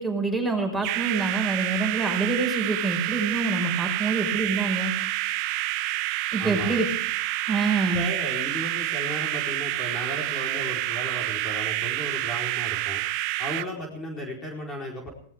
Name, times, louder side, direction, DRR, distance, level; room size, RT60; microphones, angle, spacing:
voice 1, 0.0-4.9 6.3-6.9 7.5-8.0, right 3 dB, 5° right, 1 dB, 5.4 m, -26 dB
sound 1, 0.8-13.7, right 17 dB, 45° right, 1.1 m, -28 dB
voice 2, 6.4-6.8 7.9-13.0 13.4-15.1, equal, 20° left, 0 dB, 4.4 m, -35 dB
20.0 x 18.5 x 3.6 m, 0.64 s
hypercardioid pair, 120°, 0 cm